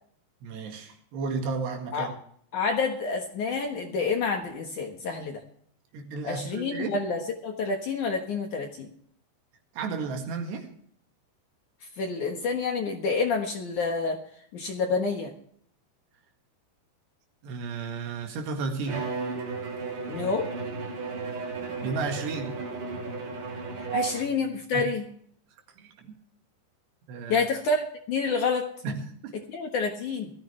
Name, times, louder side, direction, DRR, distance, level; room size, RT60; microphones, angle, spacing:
voice 1, 0.4-2.2 5.9-7.0 9.8-10.7 17.4-19.1 21.8-22.6 23.8-24.1 24.7-24.9 25.8-26.2 27.1-27.5 28.8-29.4, right 4 dB, 75° right, 4.0 m, -33 dB
voice 2, 2.5-5.4 6.2-8.9 12.0-14.2 14.5-15.3 20.1-20.5 23.8-25.0 27.3-28.7 29.5-30.3, left 4 dB, 60° left, 2.3 m, -28 dB
Bowed string instrument, 18.9-24.5, right 4 dB, 50° right, 4.4 m, -35 dB
18.0 x 14.5 x 3.3 m
omnidirectional pair, 5.1 m